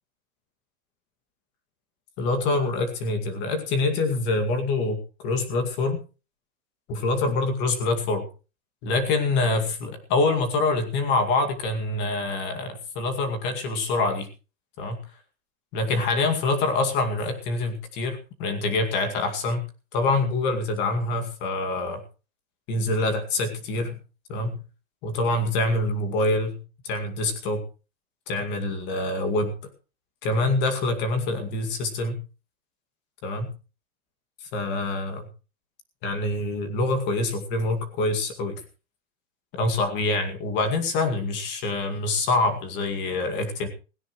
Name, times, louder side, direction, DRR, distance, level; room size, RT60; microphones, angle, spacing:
voice 1, 2.2-6.0 6.9-8.3 8.8-14.3 14.8-15.0 15.7-19.6 19.9-22.0 22.7-23.9 24.3-24.6 25.0-27.6 28.3-29.5 30.2-32.2 33.2-33.5 34.5-35.3 36.0-38.6 39.5-43.7, left 2 dB, 25° left, 6 dB, 2.3 m, -25 dB
17.0 x 17.0 x 3.1 m, 0.33 s
supercardioid pair, 180°, 41 cm